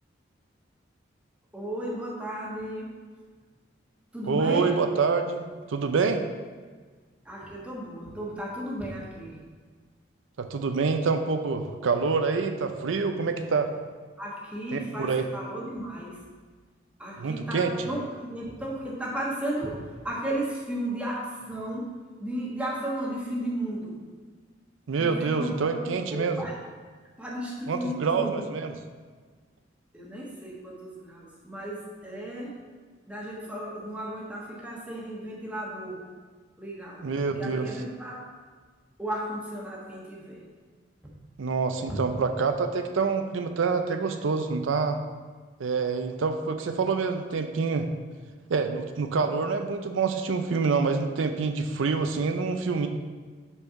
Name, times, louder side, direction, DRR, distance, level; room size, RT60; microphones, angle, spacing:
voice 1, 1.5-2.9 4.1-4.7 7.2-9.4 14.2-16.2 17.0-21.9 22.2-24.0 25.0-26.5 27.2-28.5 29.9-32.5 33.1-36.0 36.6-38.2 39.0-40.4 41.9-42.0, right 1 dB, 5° right, -5 dB, 1.3 m, -34 dB
voice 2, 4.3-6.2 10.4-13.7 14.7-15.3 17.2-17.7 24.9-26.5 27.7-28.7 37.0-37.7 41.4-45.0 45.6-47.9 48.5-52.9, right 4 dB, 90° right, 7 dB, 0.5 m, -26 dB
5.4 x 4.5 x 5.7 m, 1.5 s
head